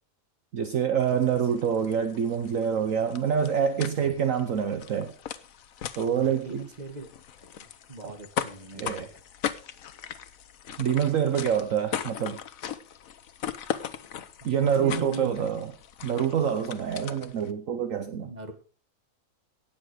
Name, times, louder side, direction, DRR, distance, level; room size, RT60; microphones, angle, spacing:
voice 1, 0.5-5.1 6.0-6.7 8.0-8.1 8.7-9.1 10.8-12.4 14.4-15.7 16.0-18.3, right 8 dB, 60° right, 1.2 m, -26 dB
sound 1, 1.0-17.5, left 9 dB, 65° left, 1.3 m, -39 dB
voice 2, 6.1-7.1 7.9-9.1 14.4-15.5 18.2-18.5, right 2 dB, 30° right, 1.8 m, -38 dB
17.0 x 7.4 x 4.9 m
omnidirectional pair, 1.6 m